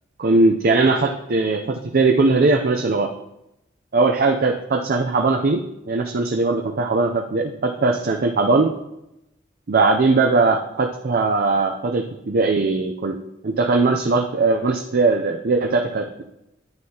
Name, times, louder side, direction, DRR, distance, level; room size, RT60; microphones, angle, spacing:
voice 1, 0.2-3.1 3.9-5.6 5.9-8.7 9.7-13.2 13.4-16.2, right 3 dB, 50° right, 4 dB, 0.5 m, -19 dB
9.6 x 9.2 x 2.9 m, 0.89 s
head